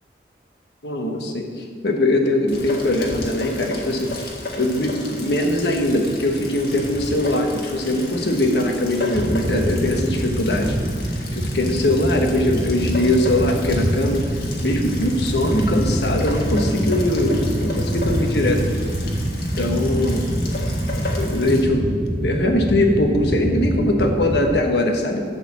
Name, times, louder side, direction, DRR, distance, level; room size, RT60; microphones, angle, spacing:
voice 1, 0.8-4.3 4.6-10.7 11.3-14.2 14.6-18.7 19.0-19.1 19.6-20.3 21.2-25.2, left 1 dB, 80° left, 3 dB, 1.3 m, -21 dB
Rain, 2.5-21.6, left 1 dB, 60° left, 1.6 m, -31 dB
sound 1, 9.1-24.6, right 1 dB, 20° right, 0.5 m, -25 dB
11.5 x 4.2 x 7.2 m, 2.3 s
head